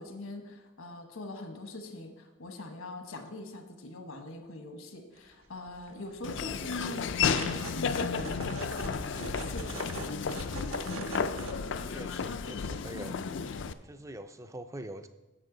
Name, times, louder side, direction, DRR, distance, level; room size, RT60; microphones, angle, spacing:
voice 1, 0.0-7.3 7.6-8.3 8.8-9.8, left 2 dB, 80° left, 5 dB, 1.2 m, -43 dB
sound 1, 5.2-5.3 5.7-5.9 6.2-11.5, right 2 dB, 75° right, 1.2 m, -42 dB
Laughter / Walk footsteps, 6.2-13.7, left 6 dB, 60° left, 0.4 m, -33 dB
voice 2, 11.3-13.2 13.8-15.1, right 1 dB, 15° right, 10 dB, 0.4 m, -44 dB
10.5 x 7.7 x 3.9 m, 1.1 s
head